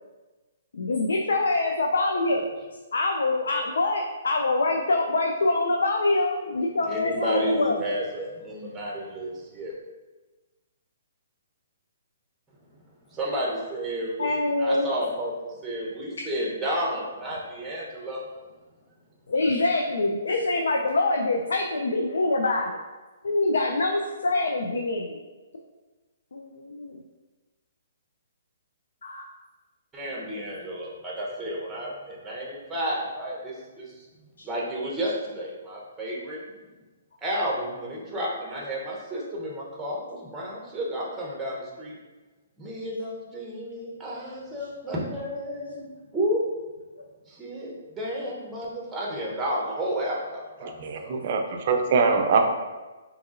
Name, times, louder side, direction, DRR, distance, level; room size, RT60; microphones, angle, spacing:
voice 1, 0.7-2.6 2.9-7.8 14.2-14.9 19.3-22.8 23.2-25.2 26.3-27.0 29.0-29.2 34.4-34.5 47.0-47.1, left 2 dB, 85° left, 1 dB, 0.3 m, -25 dB
voice 2, 6.8-9.8 13.1-18.2 29.9-34.1 34.4-36.4 37.2-41.9 42.6-46.4 47.3-50.7 51.0-51.1, equal, 10° right, -4 dB, 0.8 m, -31 dB
voice 3, 50.6-52.4, right 5 dB, 50° right, 4 dB, 0.4 m, -23 dB
3.7 x 2.9 x 2.5 m, 1.2 s
hypercardioid pair, 150°, 0 cm